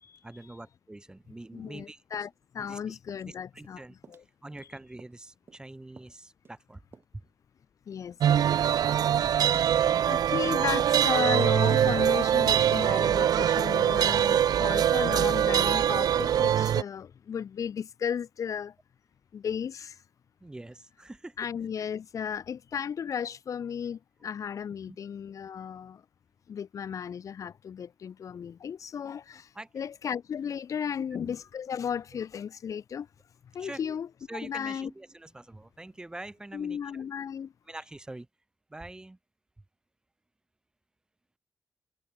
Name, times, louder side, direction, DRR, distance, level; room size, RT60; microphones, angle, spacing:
voice 1, 0.2-2.0 2.6-3.0 3.3-4.0 4.4-6.8 20.4-21.4 29.5-29.7 33.6-34.0 34.3-37.0 37.7-38.3 38.7-39.2, right 2 dB, 10° right, 2.7 m, -44 dB
voice 2, 1.5-3.8 4.1-4.2 7.9-8.5 10.1-18.7 19.3-20.0 21.4-26.0 26.5-33.1 33.5-34.1 34.4-34.9 36.5-37.5, left 7 dB, 55° left, 2.6 m, -34 dB
sound 1, 2.1-2.8 3.1-3.3 3.6-3.8 4.0-4.7 5.0-5.2 5.5-5.7 6.0-6.2 6.4-6.6 6.9-7.0, right 5 dB, 35° right, 6.3 m, -55 dB
sound 2, 8.2-16.8, right 10 dB, 70° right, 0.9 m, -23 dB
wide cardioid pair, 170°, 7 cm